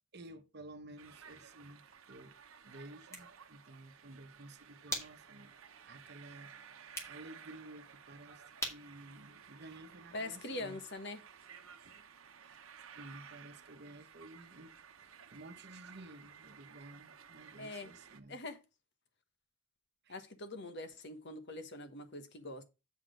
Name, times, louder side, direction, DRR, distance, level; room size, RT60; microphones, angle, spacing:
voice 1, 0.1-2.4 2.6-10.8 11.8-12.0 12.3-12.6 12.9-14.7 15.0-18.4 20.0-20.1, right 1 dB, 55° right, 1.0 m, -53 dB
sound 1, 1.0-18.2, right 7 dB, 90° right, 0.9 m, -56 dB
sound 2, 2.9-10.3, equal, 15° left, 2.2 m, -48 dB
voice 2, 10.1-11.2 17.6-17.9 18.3-18.6 20.1-22.6, left 2 dB, 55° left, 1.2 m, -43 dB
7.4 x 6.0 x 4.9 m
head